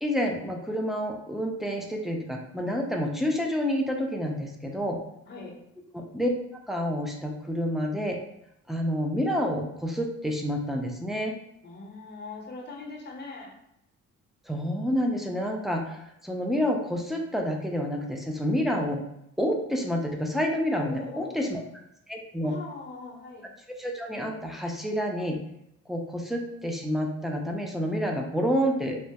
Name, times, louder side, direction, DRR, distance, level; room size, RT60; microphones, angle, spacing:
voice 1, 0.0-5.0 5.9-6.3 6.7-8.2 8.7-11.3 14.5-19.0 19.4-21.6 22.1-22.6 23.8-25.4 25.9-29.0, equal, ahead, 1 dB, 0.3 m, -28 dB
voice 2, 5.3-5.6 11.6-13.6 20.7-21.5 22.4-23.5, left 3 dB, 35° left, 0 dB, 0.7 m, -41 dB
2.2 x 2.0 x 2.7 m, 0.79 s
cardioid pair, 90°, 30 cm